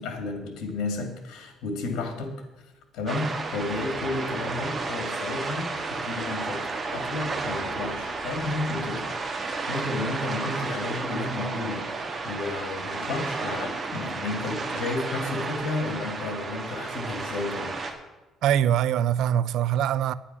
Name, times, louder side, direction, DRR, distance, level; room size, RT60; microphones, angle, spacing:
voice 1, 0.0-2.4 2.9-17.8, left 3 dB, 80° left, 2.4 m, -32 dB
sound 1, 3.1-17.9, right 3 dB, 30° right, 1.6 m, -32 dB
voice 2, 18.4-20.1, right 10 dB, 70° right, 0.5 m, -23 dB
10.0 x 9.9 x 6.0 m
cardioid pair, 135°, 0 cm